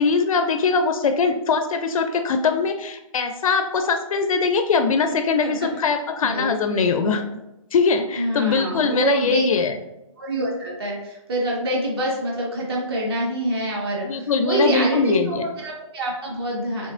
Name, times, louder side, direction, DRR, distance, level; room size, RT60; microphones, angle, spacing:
voice 1, 0.0-7.2 7.7-9.7 14.0-15.4, left 4 dB, 80° left, 7 dB, 0.4 m, -21 dB
voice 2, 5.4-5.8 6.2-7.2 8.1-9.4 10.2-16.9, right 1 dB, 45° right, -2 dB, 1.3 m, -26 dB
4.3 x 3.0 x 2.4 m, 0.94 s
hypercardioid pair, 170°, 17 cm